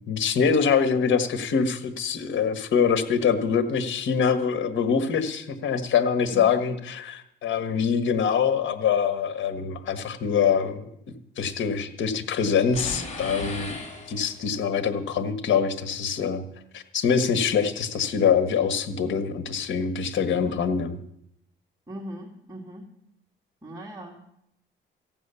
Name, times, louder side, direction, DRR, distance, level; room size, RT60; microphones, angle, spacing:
voice 1, 0.1-10.8 11.4-13.8 14.1-16.4 16.7-20.9, left 6 dB, 70° left, 10 dB, 1.6 m, -24 dB
sound 1, 12.7-14.6, left 2 dB, 35° left, 4.2 m, -36 dB
voice 2, 21.9-22.9 23.6-24.2, equal, 15° right, -1 dB, 2.3 m, -39 dB
15.0 x 9.2 x 7.0 m, 0.76 s
cardioid pair, 90°, 20 cm